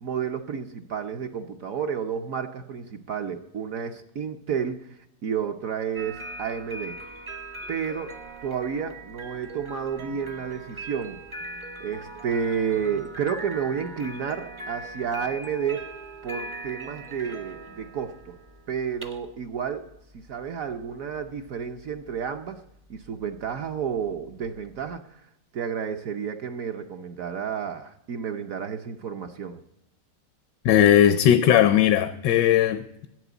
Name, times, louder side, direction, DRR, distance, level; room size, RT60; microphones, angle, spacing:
voice 1, 0.0-7.0 7.7-8.1 8.4-11.2 11.8-15.8 16.2-18.4 18.7-19.9 20.1-22.6 22.9-29.6, right 7 dB, 60° right, 1.0 m, -31 dB
sound 1, 5.9-25.0, right 2 dB, 25° right, 0.6 m, -41 dB
voice 2, 30.6-33.1, left 10 dB, 80° left, 1.3 m, -18 dB
11.0 x 8.1 x 8.0 m
omnidirectional pair, 1.9 m